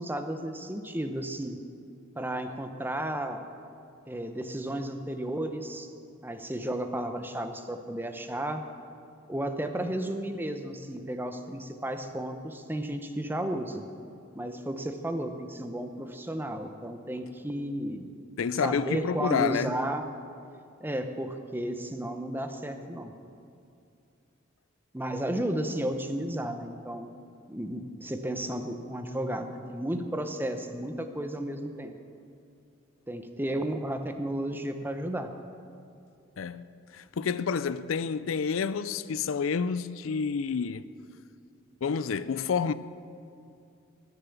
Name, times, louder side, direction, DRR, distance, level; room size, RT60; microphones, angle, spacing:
voice 1, 0.0-1.6 2.2-3.4 4.1-5.9 6.2-8.6 9.3-13.8 14.3-18.1 18.6-20.1 20.8-23.1 24.9-27.1 27.5-31.9 33.1-35.3, right 1 dB, 10° right, 0.8 m, -33 dB
voice 2, 18.4-19.7 36.4-36.7 36.9-40.9 41.8-42.7, left 6 dB, 90° left, 0.4 m, -29 dB
20.0 x 6.8 x 7.1 m
head